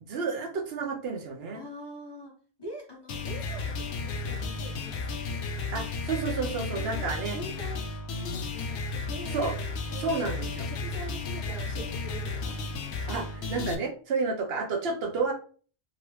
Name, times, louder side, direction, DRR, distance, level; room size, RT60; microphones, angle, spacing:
voice 1, 0.1-1.6 5.7-7.4 9.3-9.5 10.0-10.7 13.1-15.3, right 4 dB, 70° right, 3 dB, 0.9 m, -30 dB
voice 2, 1.5-2.3 2.6-5.4 6.7-7.8 8.2-9.4 9.9-10.2 10.6-12.6, equal, 25° left, -2 dB, 0.9 m, -44 dB
sound 1, 3.1-13.7, left 3 dB, 75° left, 0.8 m, -33 dB
3.0 x 2.6 x 3.0 m, 0.42 s
omnidirectional pair, 1.1 m